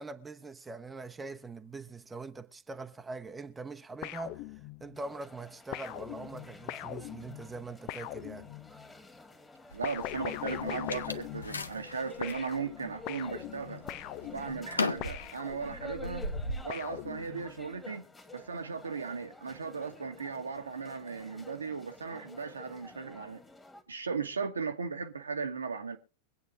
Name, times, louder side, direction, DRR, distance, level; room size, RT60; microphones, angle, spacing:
voice 1, 0.0-4.4 4.8-8.5, right 3 dB, 10° right, 0.9 m, -43 dB
sound 1, 4.0-5.0 5.7-8.9 9.8-11.9 12.2-16.0 16.7-17.7, left 14 dB, 45° left, 0.6 m, -41 dB
sound 2, 5.0-23.8, left 2 dB, 10° left, 1.9 m, -51 dB
sound 3, 9.7-12.4 13.0-13.5 13.8-16.6, left 2 dB, 75° left, 0.9 m, -37 dB
voice 2, 9.7-13.8 14.2-16.3 16.6-18.1 18.3-23.4 23.9-26.0, right 5 dB, 75° right, 1.3 m, -37 dB
24.0 x 8.8 x 2.5 m
figure-of-eight pair, 90°, 0 cm